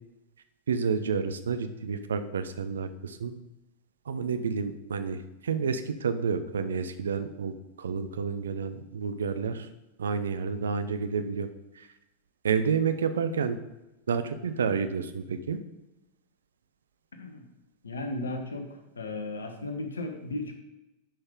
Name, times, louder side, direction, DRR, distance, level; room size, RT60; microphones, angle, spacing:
voice 1, 0.7-3.3 4.1-9.7 10.0-11.5 12.4-13.6 14.1-15.6, right 6 dB, 65° right, 10 dB, 0.6 m, -30 dB
voice 2, 17.8-18.7 18.9-20.5, left 2 dB, 70° left, 5 dB, 1.1 m, -35 dB
10.0 x 5.5 x 3.7 m, 0.97 s
figure-of-eight pair, 90°, 0 cm